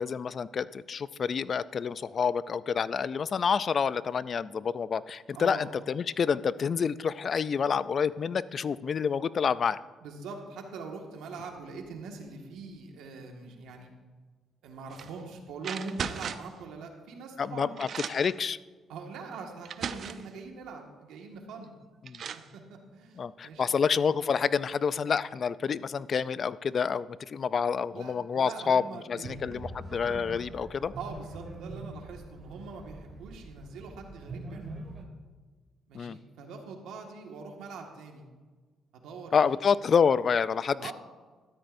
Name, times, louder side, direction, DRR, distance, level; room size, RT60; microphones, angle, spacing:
voice 1, 0.0-9.8 17.4-18.6 22.1-22.2 23.2-28.8 29.1-30.9 35.9-36.2 39.3-40.9, left 6 dB, 50° left, 17 dB, 0.3 m, -28 dB
voice 2, 5.3-5.7 10.0-13.9 14.6-17.7 18.9-21.7 22.3-23.7 27.9-29.4 30.9-34.8 35.9-38.3 38.9-39.3 40.8-40.9, right 4 dB, 85° right, 2 dB, 1.7 m, -43 dB
sound 1, 14.9-15.1 15.6-16.6 17.4-17.5 17.8-18.4 19.2-19.3 19.7-20.3 21.6-21.7 22.1-22.5, right 7 dB, 60° right, 0.5 m, -37 dB
sound 2, 29.2-35.0, right 2 dB, 40° right, 1.9 m, -43 dB
13.0 x 12.5 x 2.6 m, 1.4 s
cardioid pair, 90°, 0 cm